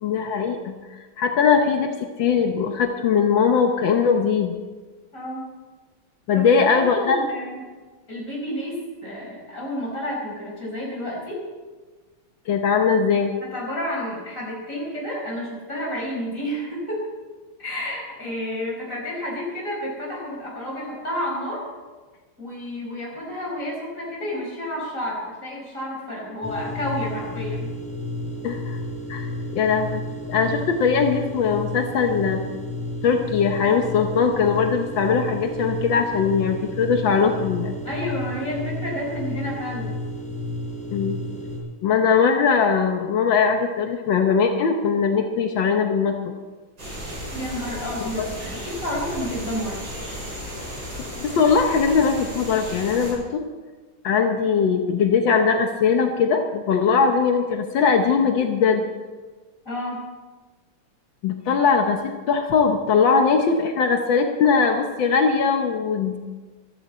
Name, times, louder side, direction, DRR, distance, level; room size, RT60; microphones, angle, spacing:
voice 1, 0.0-4.5 6.3-7.3 12.5-13.3 28.4-28.8 29.1-30.0 30.3-32.4 33.0-37.7 40.9-41.2 41.8-46.2 48.2-48.3 51.2-53.4 54.0-58.8 61.2-66.2, left 5 dB, 75° left, 4 dB, 1.7 m, -20 dB
voice 2, 5.1-5.4 6.3-7.6 8.1-8.8 9.0-11.4 13.4-17.0 17.6-21.6 22.4-27.7 37.8-39.9 47.3-49.8 59.7-60.0, left 1 dB, 40° left, -3 dB, 5.5 m, -30 dB
sound 1, 26.4-41.6, left 1 dB, 5° left, 4.0 m, -32 dB
sound 2, 46.8-53.1, equal, 80° right, 7.0 m, -34 dB
15.0 x 14.0 x 4.3 m, 1.3 s
omnidirectional pair, 2.2 m